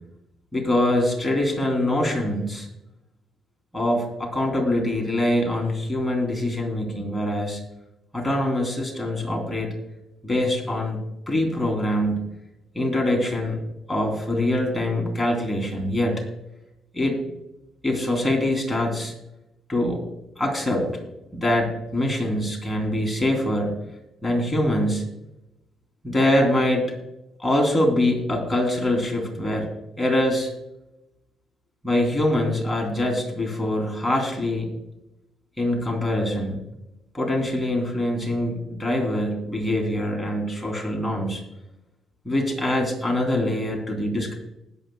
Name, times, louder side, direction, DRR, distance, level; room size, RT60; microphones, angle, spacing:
voice 1, 0.5-2.7 3.7-7.6 8.1-9.7 10.2-11.0 11.3-12.3 12.7-13.6 13.9-16.2 16.9-17.2 17.8-19.1 19.7-20.0 20.4-21.0 21.3-23.8 24.2-25.1 26.0-26.9 27.4-29.7 30.0-30.5 31.8-34.7 35.6-36.6 37.1-41.4 42.2-44.4, left 1 dB, 10° left, 0 dB, 3.4 m, -24 dB
20.0 x 8.2 x 2.4 m, 0.90 s
cardioid pair, 90°, 0 cm